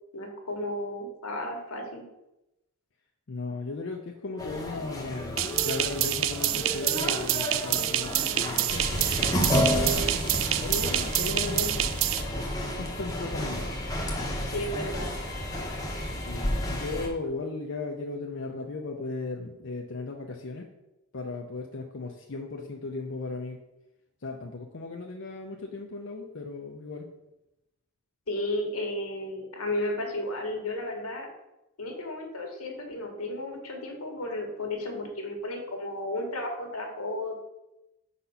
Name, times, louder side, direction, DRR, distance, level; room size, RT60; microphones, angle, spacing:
voice 1, 0.1-2.0 9.7-10.1 14.4-15.1 28.3-31.3 31.8-37.4, left 1 dB, 80° left, 2 dB, 1.4 m, -33 dB
voice 2, 3.3-9.6 10.6-11.9 12.8-13.7 16.2-20.7 21.1-23.6 24.2-27.1, left 3 dB, 55° left, 1 dB, 0.6 m, -36 dB
sound 1, 4.4-17.1, equal, 15° left, 0.8 m, -31 dB
sound 2, 5.4-12.2, right 13 dB, 60° right, 0.3 m, -28 dB
5.0 x 4.2 x 5.6 m, 0.92 s
head